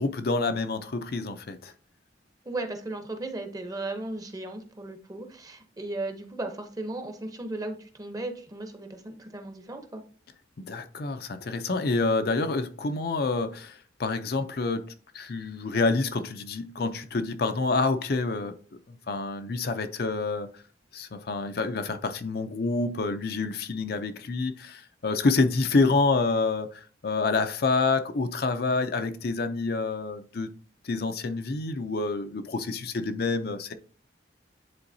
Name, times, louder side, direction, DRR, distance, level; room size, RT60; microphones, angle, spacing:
voice 1, 0.0-1.7 10.6-14.9 15.1-18.6 19.1-20.5 20.9-30.5 30.8-33.7, left 3 dB, 55° left, 0.5 m, -27 dB
voice 2, 2.5-10.0, right 2 dB, 20° right, 0.8 m, -36 dB
9.8 x 3.9 x 2.7 m
head